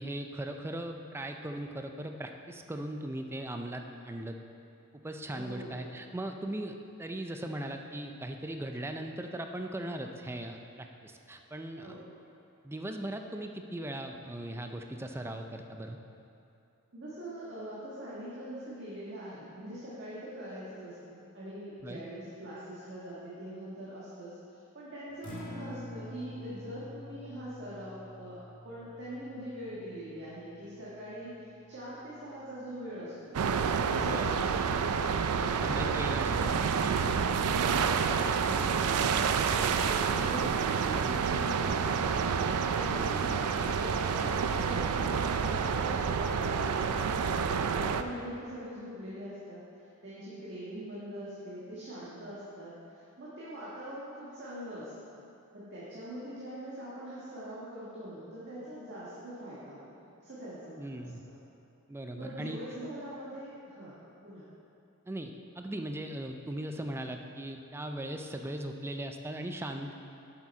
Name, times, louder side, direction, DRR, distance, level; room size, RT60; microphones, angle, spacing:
voice 1, 0.0-4.4 5.0-12.0 12.6-16.0 21.8-22.0 34.0-34.3 35.6-36.6 42.9-43.1 60.8-61.2 61.9-62.6 65.1-69.9, right 1 dB, 10° right, 5 dB, 0.4 m, -38 dB
voice 2, 5.3-5.9 11.8-12.0 16.9-28.4 28.6-33.4 33.7-34.7 35.3-37.2 37.4-42.0 42.5-49.6 50.0-55.2 55.5-59.9 60.2-61.1 62.2-64.4, equal, 55° right, -9 dB, 1.6 m, -43 dB
Acoustic guitar, 25.1-33.3, left 1 dB, 40° left, 1.7 m, -48 dB
sound 1, 33.3-48.0, right 6 dB, 85° right, 0.4 m, -29 dB
7.6 x 7.3 x 4.3 m, 2.7 s
head